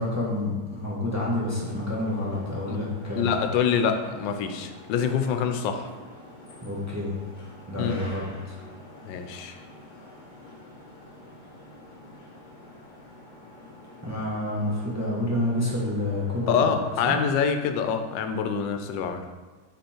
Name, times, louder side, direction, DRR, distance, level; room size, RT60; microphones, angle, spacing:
voice 1, 0.0-3.4 6.6-7.1 7.7-8.6 14.0-16.8 17.0-17.1, left 1 dB, 10° right, -5 dB, 1.0 m, -28 dB
sound 1, 1.6-17.0, left 2 dB, 35° left, 0.8 m, -47 dB
voice 2, 3.2-5.9 7.8-8.0 9.0-9.6 16.5-19.2, left 7 dB, 85° left, 7 dB, 1.3 m, -25 dB
5.4 x 5.0 x 4.4 m, 1.4 s
omnidirectional pair, 1.9 m